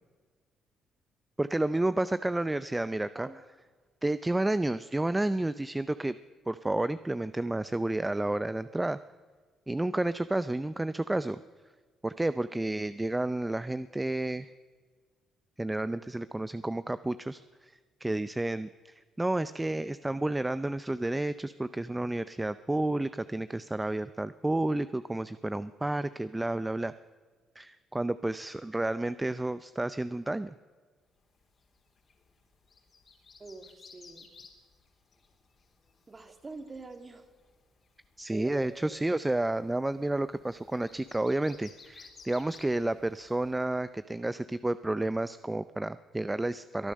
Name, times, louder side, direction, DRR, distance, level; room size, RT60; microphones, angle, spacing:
voice 1, 1.4-3.3 4.0-6.1 6.5-9.0 9.7-11.4 12.0-14.5 15.6-26.9 27.6-30.5 38.2-46.9, right 2 dB, 15° right, 14 dB, 0.5 m, -31 dB
sound 1, 31.3-43.8, left 4 dB, 45° left, 3.0 m, -58 dB
voice 2, 33.4-34.3 36.1-37.2 38.3-39.0, right 3 dB, 30° right, 8 dB, 2.0 m, -45 dB
22.5 x 10.0 x 6.5 m, 1.5 s
supercardioid pair, 75°, 0 cm